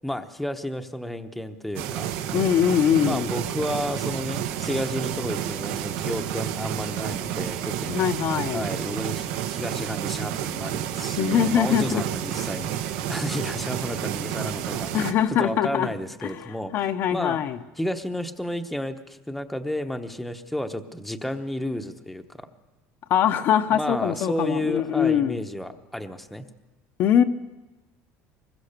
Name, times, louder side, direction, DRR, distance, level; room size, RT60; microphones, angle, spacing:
voice 1, 0.0-2.1 3.0-8.0 8.5-14.9 15.3-16.7 17.1-17.4 17.8-22.5 23.7-26.5, left 1 dB, ahead, 6 dB, 1.0 m, -32 dB
sound 1, 1.8-15.1, right 11 dB, 85° right, 1.9 m, -30 dB
voice 2, 2.3-3.3 7.9-8.7 11.2-12.0 14.9-15.9 16.2-16.4 16.7-17.6 23.1-25.4 27.0-27.2, left 9 dB, 40° left, 7 dB, 0.9 m, -22 dB
25.0 x 21.5 x 6.7 m, 1.1 s
cardioid pair, 175°, 5 cm